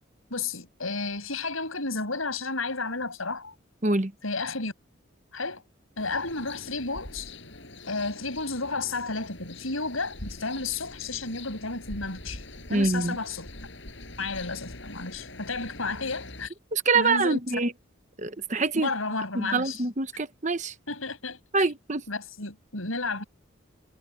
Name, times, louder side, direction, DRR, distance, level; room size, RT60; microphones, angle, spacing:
voice 1, 0.3-3.5 4.2-4.7 5.3-5.6 6.0-7.3 7.8-12.4 12.7-13.5 14.2-16.5 16.9-17.4 18.7-19.8 20.9-21.7 22.1-23.2, left 3 dB, 85° left, 6.5 m, -32 dB
sound 1, 6.0-16.5, left 2 dB, 60° left, 6.9 m, -43 dB
voice 2, 12.7-13.2 16.7-17.7 18.2-18.9 19.3-20.7 21.5-22.0, right 3 dB, 35° right, 1.0 m, -25 dB
head